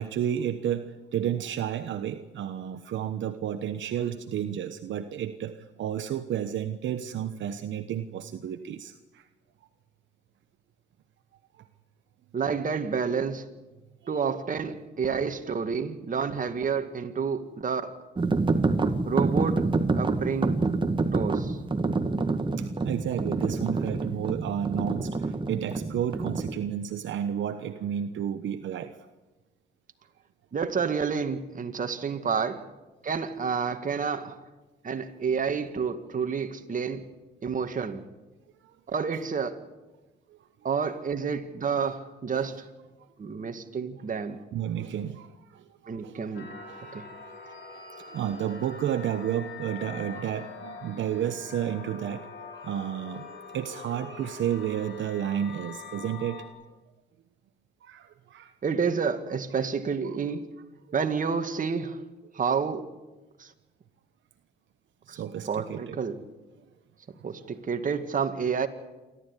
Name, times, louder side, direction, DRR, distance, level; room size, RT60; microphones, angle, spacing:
voice 1, 0.0-9.2 14.0-14.1 22.6-29.0 42.3-42.5 44.5-46.3 46.7-46.8 47.4-53.2 53.5-56.4 57.8-58.5 60.0-60.2 65.1-66.1, right 10 dB, 70° right, 1.1 m, -32 dB
voice 2, 12.3-13.5 14.1-18.0 19.1-20.6 21.1-21.6 30.5-32.6 33.0-34.4 34.8-37.0 37.4-38.0 38.9-39.6 40.6-42.7 43.2-44.4 45.9-46.5 46.9-47.0 58.6-60.5 60.9-62.0 62.3-62.9 63.4-63.5 65.1-65.2 65.5-66.2 67.1-68.7, right 6 dB, 40° right, 2.2 m, -29 dB
sound 1, 18.2-26.5, right 3 dB, 25° right, 1.9 m, -27 dB
sound 2, 46.3-56.5, left 5 dB, 65° left, 6.0 m, -44 dB
28.0 x 13.0 x 10.0 m
cardioid pair, 90°, 20 cm